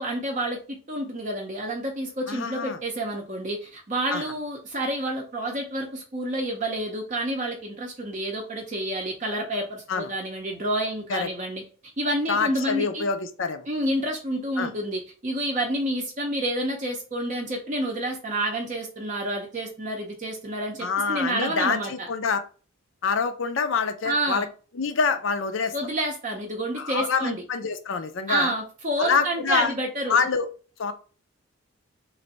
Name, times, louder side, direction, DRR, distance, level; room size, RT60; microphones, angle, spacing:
voice 1, 0.0-11.6 12.0-13.1 13.7-22.1 24.0-24.5 25.7-27.4 28.3-30.2, right 1 dB, 35° right, 1 dB, 0.6 m, -29 dB
voice 2, 2.3-2.8 4.1-4.3 9.9-10.1 11.1-11.3 12.3-13.7 14.6-14.7 20.8-22.4 23.0-24.5 24.7-25.7 26.8-28.5 29.0-29.7 30.1-30.5 30.8-30.9, left 5 dB, 60° left, 9 dB, 0.5 m, -26 dB
3.2 x 2.6 x 4.0 m, 0.38 s
head